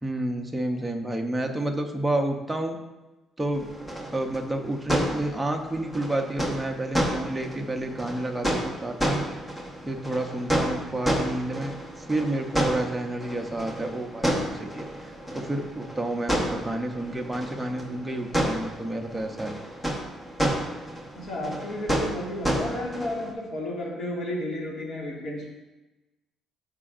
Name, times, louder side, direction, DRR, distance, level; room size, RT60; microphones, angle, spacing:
voice 1, 0.0-2.8 3.4-3.7 4.1-9.3 9.9-19.6, right 1 dB, 10° right, 2 dB, 0.7 m, -30 dB
sound 1, 3.5-23.3, equal, 10° left, 1.2 m, -31 dB
voice 2, 21.1-25.5, left 1 dB, 50° left, -3 dB, 2.1 m, -32 dB
13.0 x 5.0 x 2.5 m, 1.1 s
cardioid pair, 150°, 0 cm